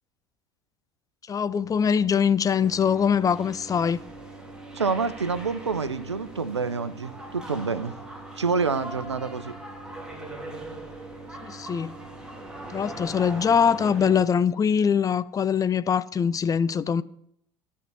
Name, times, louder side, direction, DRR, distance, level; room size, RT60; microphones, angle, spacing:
voice 1, 1.3-4.0 11.4-11.9 12.7-17.0, left 7 dB, 25° left, 0.6 m, -23 dB
sound 1, 2.6-14.2, right 2 dB, 5° right, 3.0 m, -41 dB
voice 2, 4.7-7.9 8.4-9.6, right 4 dB, 85° right, 0.7 m, -27 dB
13.5 x 5.7 x 7.6 m
figure-of-eight pair, 70°, 14 cm